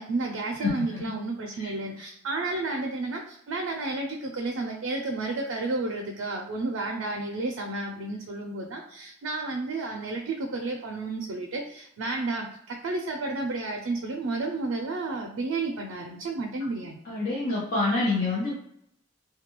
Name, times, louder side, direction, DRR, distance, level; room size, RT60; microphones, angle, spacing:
voice 1, 0.0-17.0, right 2 dB, 80° right, 2 dB, 0.4 m, -31 dB
voice 2, 17.0-18.7, left 3 dB, 50° left, -7 dB, 0.7 m, -27 dB
2.2 x 2.2 x 2.9 m, 0.71 s
head